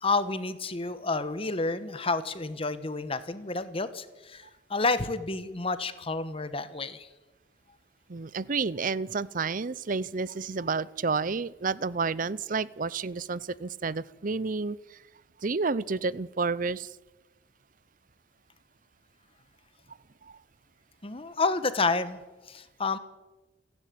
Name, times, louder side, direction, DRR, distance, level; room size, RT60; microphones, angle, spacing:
voice 1, 0.0-7.1 21.0-22.2 22.5-23.0, left 3 dB, 30° left, 12 dB, 1.2 m, -30 dB
voice 2, 8.1-15.0 15.4-16.9 20.2-20.4, right 4 dB, 45° right, 21 dB, 0.6 m, -30 dB
29.0 x 10.5 x 9.3 m, 1.1 s
head